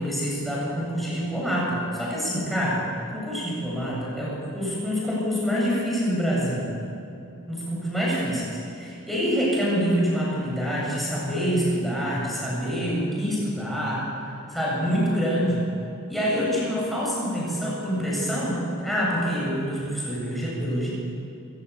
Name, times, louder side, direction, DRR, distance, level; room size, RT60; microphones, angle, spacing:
voice 1, 0.0-2.8 3.1-6.7 7.5-14.1 14.5-15.7 16.1-20.9, equal, ahead, -6 dB, 7.9 m, -26 dB
28.5 x 15.0 x 8.7 m, 2.8 s
head